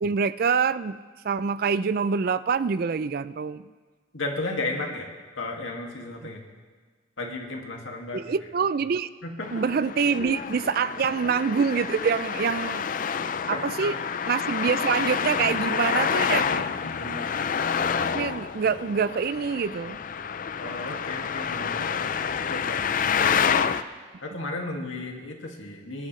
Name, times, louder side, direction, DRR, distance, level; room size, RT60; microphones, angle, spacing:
voice 1, 0.0-1.0 1.2-3.6 6.2-6.3 8.1-9.1 9.5-12.9 13.5-14.0 14.3-16.6 18.1-20.0, right 6 dB, 50° right, 15 dB, 0.4 m, -25 dB
voice 2, 4.1-5.1 5.4-6.4 7.2-8.2 9.2-9.6 13.5-14.0 16.5-17.3 20.6-23.6 24.2-26.1, left 2 dB, 85° left, 0 dB, 2.1 m, -34 dB
Traffic noise roadway noise, 9.4-23.8, left 7 dB, 45° left, 0.4 m, -28 dB
24.0 x 11.0 x 3.2 m, 1.4 s
head